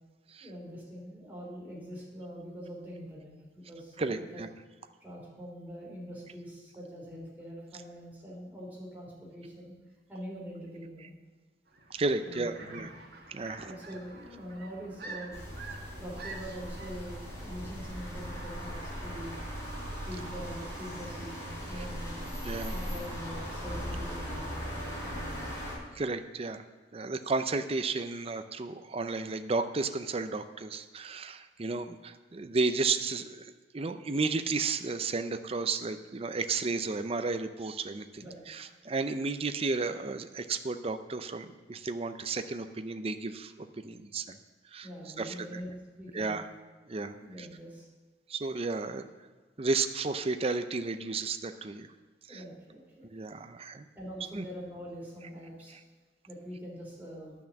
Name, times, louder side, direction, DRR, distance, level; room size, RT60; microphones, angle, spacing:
voice 1, 0.4-4.4 5.0-9.7 10.1-11.1 12.2-12.8 13.6-15.5 16.0-19.4 20.0-22.3 22.7-25.5 38.2-38.7 44.8-45.7 46.0-46.4 47.2-47.9 52.3-53.1 54.0-55.7 56.3-57.3, equal, 10° right, -5 dB, 3.6 m, -44 dB
voice 2, 4.0-4.5 11.9-12.9 13.3-13.7 22.4-22.8 25.9-26.6 26.9-44.4 44.7-44.9 45.2-45.5 46.1-46.5 46.9-47.5 48.3-49.0 49.6-51.9 52.3-52.4 53.1-53.9 54.3-54.4, right 3 dB, 35° right, 9 dB, 0.5 m, -33 dB
sound 1, 11.7-16.9, right 3 dB, 65° right, 1.8 m, -47 dB
sound 2, 15.3-25.7, equal, 15° left, 3.7 m, -39 dB
10.5 x 6.1 x 7.1 m, 1.3 s
head